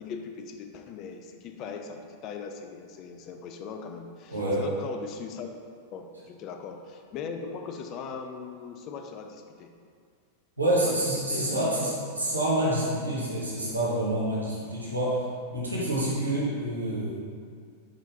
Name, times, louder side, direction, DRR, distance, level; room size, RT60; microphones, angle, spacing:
voice 1, 0.0-5.5 5.9-9.7 10.8-11.6, left 5 dB, 35° left, 4 dB, 0.4 m, -39 dB
voice 2, 4.3-4.6 10.6-15.2 15.5-17.2, right 1 dB, 80° right, -8 dB, 1.2 m, -27 dB
4.4 x 3.6 x 2.8 m, 2.2 s
figure-of-eight pair, 90°, 0 cm